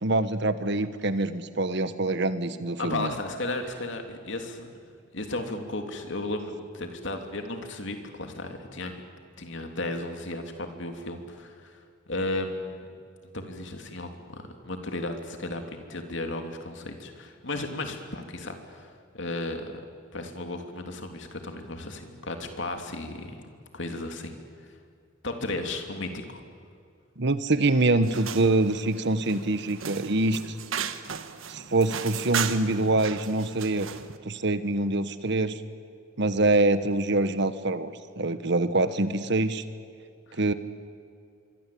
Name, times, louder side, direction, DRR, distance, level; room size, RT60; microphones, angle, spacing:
voice 1, 0.0-3.1 27.2-30.5 31.5-33.9 34.2-35.6 36.2-39.6 40.4-40.5, right 2 dB, 60° right, 12 dB, 1.4 m, -25 dB
voice 2, 2.8-4.7 5.1-8.9 9.4-11.8 12.1-12.8 13.3-19.8 20.1-23.4 23.7-24.3 25.2-26.4 40.3-40.4, left 2 dB, 65° left, 5 dB, 3.1 m, -34 dB
sound 1, 28.0-34.2, right 7 dB, 85° right, 1.4 m, -36 dB
25.5 x 24.0 x 8.6 m, 2.4 s
head